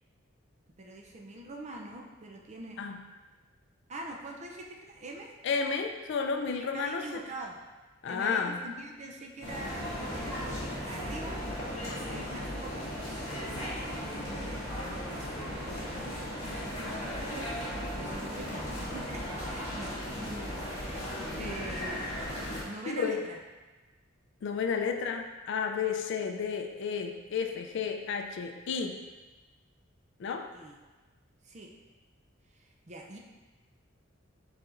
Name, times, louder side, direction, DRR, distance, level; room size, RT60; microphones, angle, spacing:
voice 1, 0.8-2.8 3.9-5.3 6.6-7.6 8.1-11.4 11.8-22.3 22.6-23.4 30.5-30.8 31.4-31.7 32.6-33.2, right 2 dB, 35° right, 0 dB, 0.5 m, -44 dB
voice 2, 5.4-7.2 8.0-8.6 21.4-21.5 22.9-23.2 24.4-29.0 30.2-30.5, left 6 dB, 60° left, 5 dB, 0.4 m, -32 dB
sound 1, 9.4-22.6, equal, 35° left, 1.5 m, -36 dB
4.7 x 4.1 x 2.5 m, 1.2 s
head